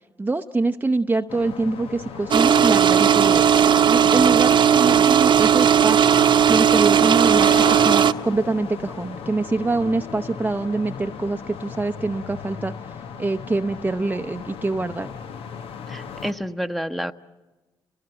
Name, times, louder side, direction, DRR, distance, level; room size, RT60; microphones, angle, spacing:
voice 1, 0.2-3.5 3.9-12.7 13.2-15.1, right 2 dB, 20° right, 6 dB, 0.7 m, -25 dB
sound 1, 1.3-16.3, left 6 dB, 75° left, 1.1 m, -36 dB
sound 2, 2.3-8.1, right 8 dB, 55° right, 0.9 m, -16 dB
voice 2, 15.9-17.1, equal, ahead, 7 dB, 1.0 m, -29 dB
28.5 x 18.5 x 7.9 m, 1.2 s
supercardioid pair, 65°, 10 cm